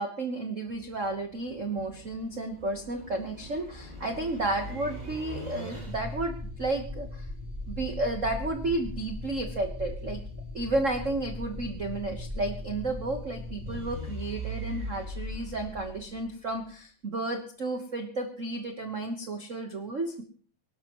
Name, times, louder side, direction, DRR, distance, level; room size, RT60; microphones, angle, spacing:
voice 1, 0.0-7.3 7.7-10.2 10.5-20.2, right 2 dB, 75° right, 5 dB, 0.7 m, -32 dB
sound 1, 0.7-16.7, left 1 dB, 15° right, 2.5 m, -39 dB
24.5 x 11.5 x 3.0 m, 0.43 s
omnidirectional pair, 3.3 m